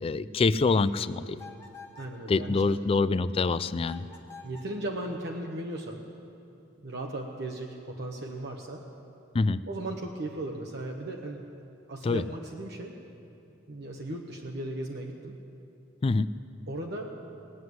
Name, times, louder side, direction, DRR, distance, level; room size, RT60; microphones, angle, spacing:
voice 1, 0.0-1.4 2.3-4.0 9.3-9.6 12.0-12.2 16.0-16.3, left 3 dB, 30° left, 15 dB, 0.3 m, -25 dB
sound 1, 1.4-2.2 3.8-4.8, left 4 dB, 15° left, 1.2 m, -48 dB
voice 2, 2.0-2.8 4.4-6.0 6.8-8.9 9.7-11.4 11.9-13.0 13.7-15.3 16.7-17.1, right 1 dB, 55° right, 0 dB, 1.0 m, -36 dB
19.5 x 7.8 x 9.5 m, 2.7 s
head